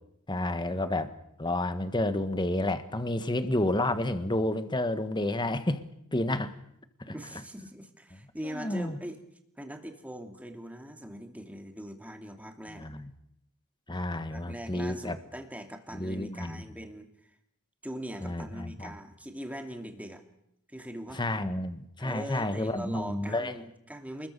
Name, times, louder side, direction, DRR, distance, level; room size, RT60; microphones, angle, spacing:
voice 1, 0.3-1.1 1.4-5.8 6.1-6.5 7.1-7.2 8.4-9.0 12.7-13.1 13.9-15.2 15.9-16.6 18.2-18.9 21.1-23.5, left 1 dB, 20° left, 10 dB, 1.5 m, -30 dB
voice 2, 7.1-9.2 9.6-12.9 14.3-17.1 17.8-20.2 20.7-21.2 22.0-24.3, equal, 5° right, 4 dB, 2.6 m, -41 dB
28.5 x 21.5 x 6.8 m, 0.78 s
head